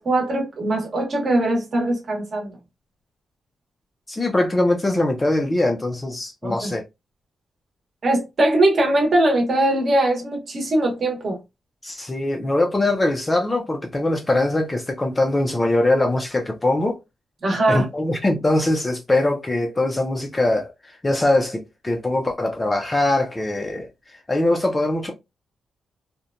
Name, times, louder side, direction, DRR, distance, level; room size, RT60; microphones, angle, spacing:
voice 1, 0.0-2.5 6.4-6.7 8.0-11.4 17.4-17.8, right 1 dB, 40° right, 0.8 m, -21 dB
voice 2, 4.1-6.8 11.8-17.0 17.7-25.1, left 2 dB, 15° left, 0.4 m, -22 dB
2.8 x 2.1 x 2.4 m
wide cardioid pair, 170°, 0 cm